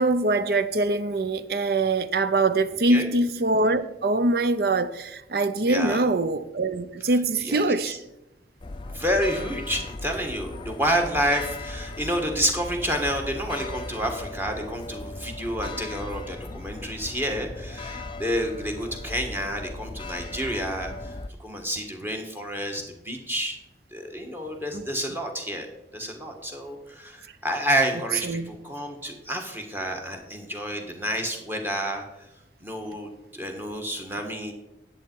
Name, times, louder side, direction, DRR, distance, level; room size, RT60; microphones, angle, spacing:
voice 1, 0.0-8.0 24.7-24.8 28.2-28.5, right 2 dB, 60° right, 0.6 m, -23 dB
voice 2, 5.7-6.1 7.4-8.0 8.9-23.6 23.9-25.7 25.9-32.0 32.6-34.5, equal, 10° right, 1.5 m, -29 dB
sound 1, 8.6-21.3, left 2 dB, 30° left, 0.4 m, -38 dB
10.5 x 8.0 x 4.6 m
head